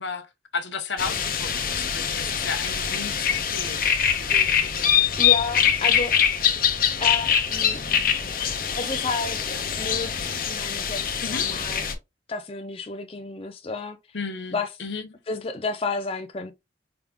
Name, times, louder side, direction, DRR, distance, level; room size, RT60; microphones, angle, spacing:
voice 1, 0.0-3.8 11.2-11.5 14.1-15.1, left 4 dB, 80° left, 0.9 m, -33 dB
sound 1, 1.0-11.9, left 8 dB, 50° left, 0.8 m, -24 dB
sound 2, 1.8-2.0 2.5-3.2 3.7-3.8 4.1-4.3 4.8-5.7 6.2-6.6 7.1-7.7 8.5-8.8, left 1 dB, 40° right, 1.0 m, -49 dB
voice 2, 5.2-6.1 7.0-7.8 8.7-11.9 12.3-14.0 14.5-14.7 15.3-16.5, left 4 dB, 30° left, 0.4 m, -31 dB
4.9 x 3.5 x 2.3 m
head